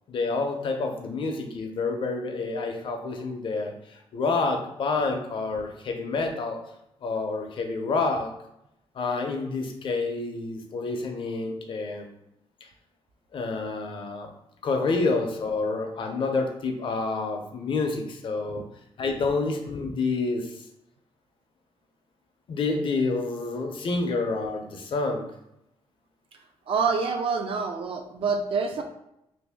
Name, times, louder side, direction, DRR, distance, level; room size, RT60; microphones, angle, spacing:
voice 1, 0.1-3.7 4.1-6.6 7.0-8.3 8.9-12.1 13.3-14.3 14.6-18.6 19.0-20.5 22.5-25.2, left 3 dB, 50° left, 4 dB, 0.5 m, -28 dB
voice 2, 26.7-28.8, right 5 dB, 60° right, 5 dB, 0.4 m, -26 dB
2.9 x 2.6 x 3.4 m, 0.82 s
wide cardioid pair, 150°, 11 cm